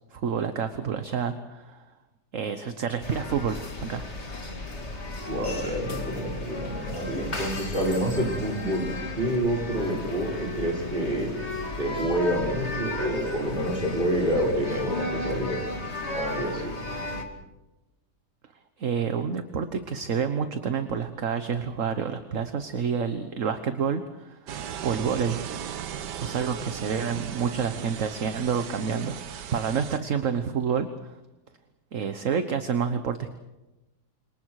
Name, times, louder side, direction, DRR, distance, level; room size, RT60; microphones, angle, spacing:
voice 1, 0.1-1.8 2.3-4.1 18.8-24.5 24.8-25.4 26.2-31.2 31.9-33.3, right 6 dB, 55° right, 9 dB, 1.4 m, -28 dB
sound 1, 3.0-17.2, left 2 dB, 40° left, 2.8 m, -34 dB
voice 2, 5.3-8.9 9.2-11.3 11.8-15.6 16.1-16.7, equal, 30° right, -2 dB, 5.6 m, -28 dB
sound 2, 24.5-30.0, right 9 dB, 90° right, 1.6 m, -37 dB
30.0 x 27.0 x 4.8 m, 1.0 s
omnidirectional pair, 1.8 m